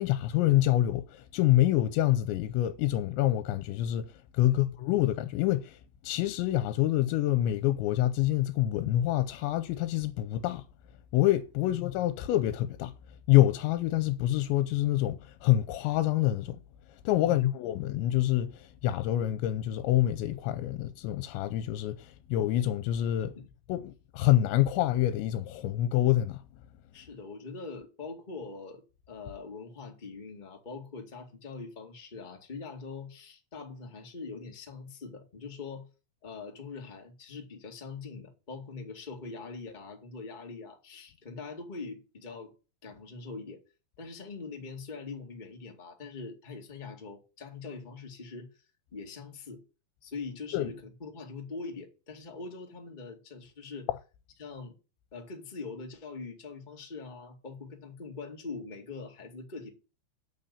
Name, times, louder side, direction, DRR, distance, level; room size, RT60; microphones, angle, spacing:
voice 1, 0.0-5.8 6.0-10.6 11.1-12.9 13.3-16.6 17.1-23.3 23.7-26.4 50.5-50.7, left 14 dB, 85° left, 3.0 m, -26 dB
voice 2, 17.2-17.9 23.3-23.5 26.9-28.8 29.1-35.9 36.2-42.5 42.8-43.6 44.0-48.5 48.9-49.6 50.0-53.9 54.4-54.7 55.1-59.7, left 4 dB, 35° left, 0.7 m, -43 dB
8.6 x 6.9 x 8.5 m
omnidirectional pair, 5.2 m